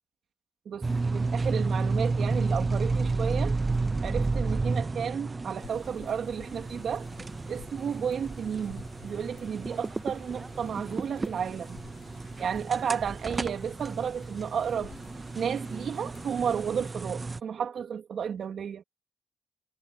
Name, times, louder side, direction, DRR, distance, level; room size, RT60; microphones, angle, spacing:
voice 1, 0.7-3.6 4.0-7.1 7.5-11.8 12.4-14.9 15.3-18.8, right 7 dB, 65° right, 2.6 m, -32 dB
sound 1, 0.8-17.4, right 3 dB, 30° right, 0.9 m, -32 dB
sound 2, 5.6-16.9, left 15 dB, 85° left, 8.0 m, -53 dB
supercardioid pair, 55°, 0 cm